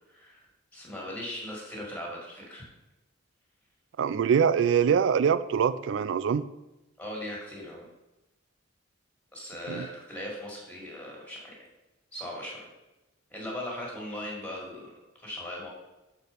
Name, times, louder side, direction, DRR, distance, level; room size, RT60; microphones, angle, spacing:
voice 1, 0.1-0.4 0.7-2.7 7.0-7.9 9.3-11.5 12.1-12.7 13.3-15.7, left 1 dB, 5° left, -3 dB, 2.0 m, -39 dB
voice 2, 4.0-6.4 9.7-9.9, right 7 dB, 65° right, 15 dB, 0.3 m, -24 dB
6.5 x 4.4 x 5.1 m, 1.0 s
head